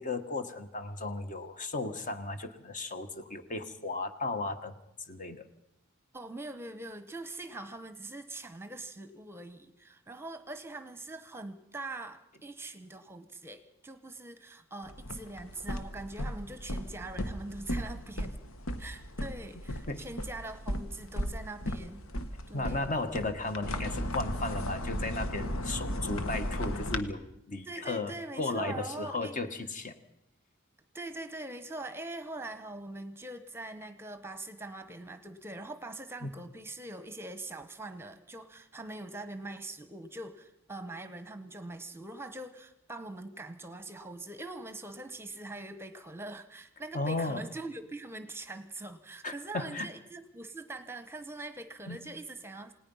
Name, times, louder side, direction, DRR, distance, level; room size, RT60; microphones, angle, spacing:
voice 1, 0.0-4.7 5.1-5.5 19.9-20.0 22.5-29.9 36.2-36.3 46.9-47.4 49.2-49.9 51.9-52.0, left 2 dB, 40° left, 8 dB, 1.6 m, -35 dB
voice 2, 6.1-18.4 18.8-22.0 22.5-22.9 27.6-29.4 30.9-52.7, right 2 dB, 10° right, 10 dB, 1.1 m, -43 dB
sound 1, 14.8-27.0, equal, 90° left, 1.5 m, -36 dB
28.5 x 18.5 x 5.7 m, 0.81 s
head